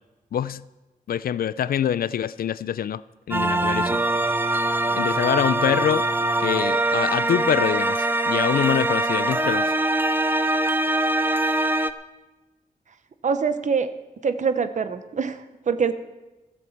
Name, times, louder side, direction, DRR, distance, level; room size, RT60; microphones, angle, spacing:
voice 1, 0.3-0.6 1.1-3.0 3.3-4.0 4.9-6.0 6.4-9.7, left 9 dB, 75° left, 0.4 m, -25 dB
sound 1, 3.3-11.9, right 2 dB, 15° right, 0.5 m, -23 dB
voice 2, 13.2-13.9 14.2-15.9, right 5 dB, 55° right, 0.8 m, -24 dB
15.5 x 7.7 x 7.2 m
wide cardioid pair, 145°, 15 cm